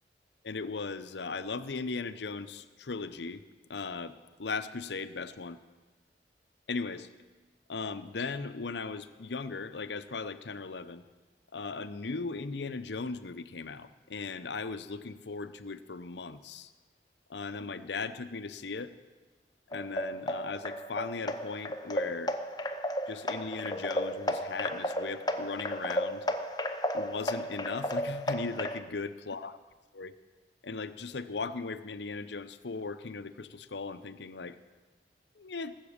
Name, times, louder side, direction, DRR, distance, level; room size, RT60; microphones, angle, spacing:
voice 1, 0.4-3.4 3.7-5.6 6.7-7.1 7.7-11.0 11.5-16.7 17.3-18.9 19.7-22.4 23.1-26.3 26.9-29.6 29.9-30.1 30.6-34.6 35.4-35.8, left 4 dB, 75° left, 11 dB, 0.7 m, -38 dB
sound 1, 19.7-28.8, left 1 dB, 20° left, 0.8 m, -34 dB
18.5 x 7.4 x 8.7 m, 1.3 s
head